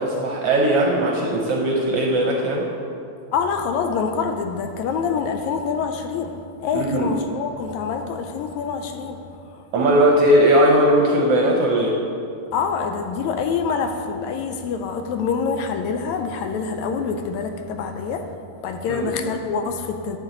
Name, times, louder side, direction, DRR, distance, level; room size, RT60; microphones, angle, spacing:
voice 1, 0.0-2.7 6.7-7.1 9.7-12.0 18.9-19.1, right 1 dB, 70° right, 0 dB, 1.5 m, -18 dB
voice 2, 3.3-9.3 9.5-9.6 12.5-18.4 18.6-20.2, left 5 dB, 80° left, 6 dB, 1.8 m, -26 dB
11.0 x 7.4 x 3.8 m, 2.5 s
omnidirectional pair, 3.4 m